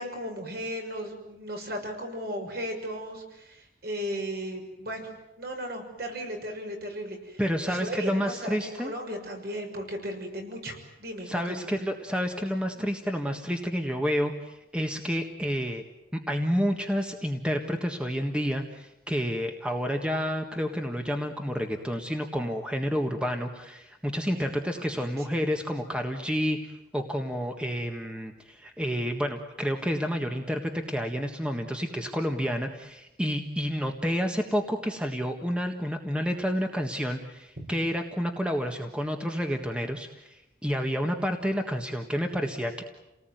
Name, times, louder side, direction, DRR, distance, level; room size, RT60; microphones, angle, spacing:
voice 1, 0.0-5.1 5.4-11.7 12.8-12.9 24.3-24.5 24.8-25.3 37.6-37.7, equal, 60° right, 3 dB, 6.4 m, -36 dB
voice 2, 7.4-8.9 11.3-15.8 16.3-42.8, equal, 5° right, 4 dB, 1.6 m, -29 dB
30.0 x 19.0 x 9.3 m, 0.93 s
head